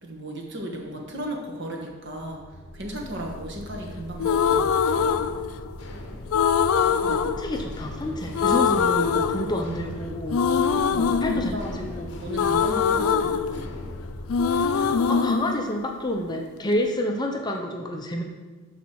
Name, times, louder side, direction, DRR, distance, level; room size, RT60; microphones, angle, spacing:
voice 1, 0.0-2.4 2.7-4.8 10.9-11.8 12.2-13.8, right 1 dB, 55° right, 0 dB, 1.4 m, -35 dB
sound 1, 2.1-15.0, left 1 dB, 55° left, 1.0 m, -39 dB
sound 2, 4.2-5.9 6.3-8.1 8.3-9.9 10.3-14.0 14.3-16.3, left 6 dB, 75° left, 0.4 m, -23 dB
voice 2, 7.0-10.4 11.2-12.1 14.7-18.2, left 1 dB, 20° left, 2 dB, 0.6 m, -29 dB
12.0 x 4.1 x 4.7 m, 1.4 s
head